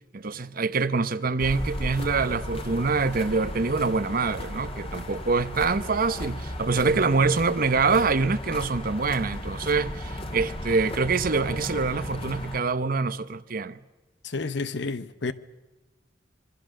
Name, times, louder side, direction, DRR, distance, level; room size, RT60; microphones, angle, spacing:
voice 1, 0.1-13.8, right 4 dB, 50° right, 0.9 m, -25 dB
sound 1, 1.4-12.6, left 1 dB, 35° left, 2.2 m, -35 dB
voice 2, 14.2-15.3, left 3 dB, 65° left, 1.0 m, -31 dB
26.0 x 23.0 x 6.5 m
head